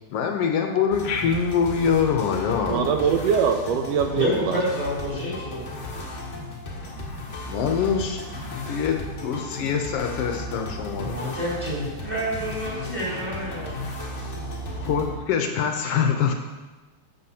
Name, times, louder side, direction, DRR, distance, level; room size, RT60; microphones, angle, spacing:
voice 1, 0.1-2.9 7.5-11.2 14.8-16.3, left 6 dB, 75° left, 4 dB, 1.4 m, -24 dB
sound 1, 0.9-15.2, left 1 dB, 55° left, 0.8 m, -35 dB
voice 2, 2.6-4.6, right 6 dB, 80° right, 6 dB, 1.5 m, -23 dB
voice 3, 4.1-5.6 11.0-13.7, equal, 15° right, -8 dB, 3.0 m, -28 dB
12.5 x 7.6 x 2.8 m, 1.2 s
omnidirectional pair, 3.3 m